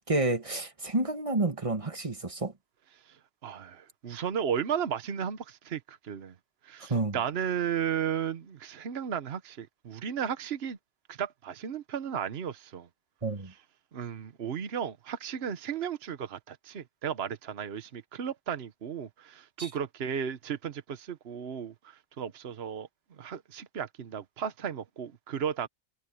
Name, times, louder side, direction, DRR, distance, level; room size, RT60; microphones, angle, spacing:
voice 1, 0.1-2.5 6.9-7.2 13.2-13.5 19.6-19.7, right 2 dB, 30° right, 1.7 m, -29 dB
voice 2, 3.4-6.3 6.6-10.8 11.1-12.9 13.9-22.9 23.2-25.7, right 8 dB, 65° right, 1.2 m, -34 dB
omnidirectional pair, 1.1 m